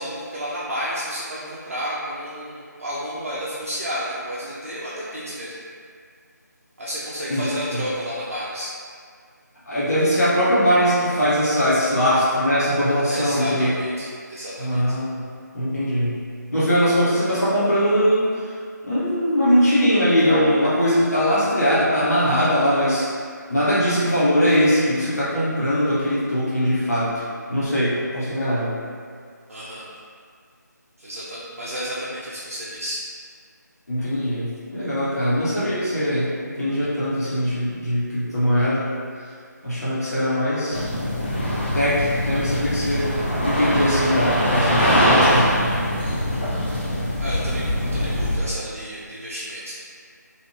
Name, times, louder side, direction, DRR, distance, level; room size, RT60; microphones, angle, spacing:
voice 1, 0.0-5.6 6.8-8.7 13.1-15.0 29.5-29.8 31.0-33.0 47.2-49.7, equal, 45° right, -8 dB, 0.4 m, -31 dB
voice 2, 7.3-7.8 9.7-13.7 14.6-15.2 15.5-16.2 16.5-18.5 18.8-23.1 23.5-28.7 33.9-38.9 39.6-40.8 41.7-43.1 43.4-45.8, equal, 55° left, -11 dB, 1.0 m, -21 dB
sound 1, 40.7-48.4, equal, 35° left, 0.5 m, -22 dB
2.8 x 2.5 x 2.8 m, 2.1 s
figure-of-eight pair, 160°, 10 cm